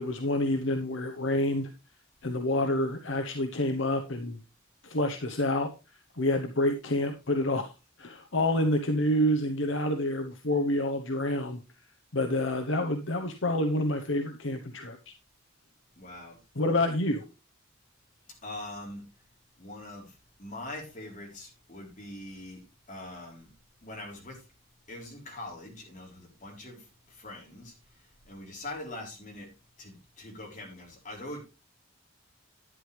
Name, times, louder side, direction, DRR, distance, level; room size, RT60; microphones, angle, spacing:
voice 1, 0.0-1.7 2.2-4.4 4.8-5.7 6.2-7.7 8.0-11.6 12.1-15.1 16.5-17.2, left 1 dB, 65° left, 5 dB, 1.0 m, -28 dB
voice 2, 16.0-16.4 18.4-19.0 19.6-23.5 23.8-24.4 24.9-29.5 29.8-31.4, left 1 dB, 35° left, -1 dB, 3.8 m, -43 dB
11.5 x 9.6 x 3.3 m, 0.28 s
head